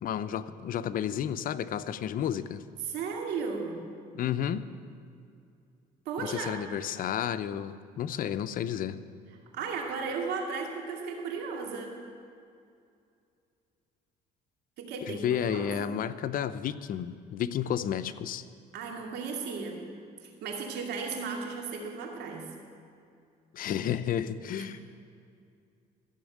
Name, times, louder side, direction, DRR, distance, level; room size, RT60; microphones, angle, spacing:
voice 1, 0.0-2.6 4.1-4.7 6.2-9.0 15.0-18.4 23.5-24.8, left 9 dB, 55° left, 13 dB, 0.6 m, -31 dB
voice 2, 2.8-3.8 6.1-6.6 9.5-12.0 14.8-15.9 18.7-19.8 20.2-22.5 24.6-24.8, right 5 dB, 80° right, 1 dB, 2.4 m, -35 dB
14.0 x 7.2 x 9.4 m, 2.4 s
cardioid pair, 110°, 17 cm